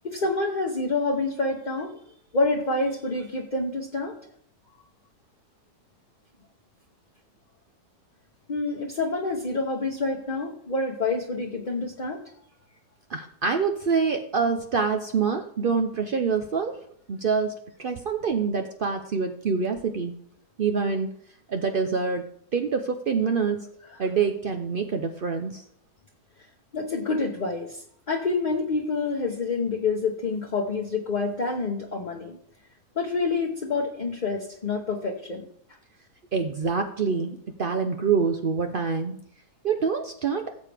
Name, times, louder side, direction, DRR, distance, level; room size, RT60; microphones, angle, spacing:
voice 1, 0.0-1.9 2.3-4.1 8.5-12.2 23.9-24.0 26.7-32.4 32.9-35.5, left 3 dB, 35° left, 0 dB, 0.9 m, -27 dB
voice 2, 13.1-16.8 17.1-20.1 20.6-21.1 21.5-22.2 22.5-23.7 24.0-25.6 36.3-39.2 39.6-40.5, right 5 dB, 85° right, 5 dB, 0.4 m, -26 dB
16.5 x 7.4 x 3.4 m, 0.69 s
omnidirectional pair, 1.8 m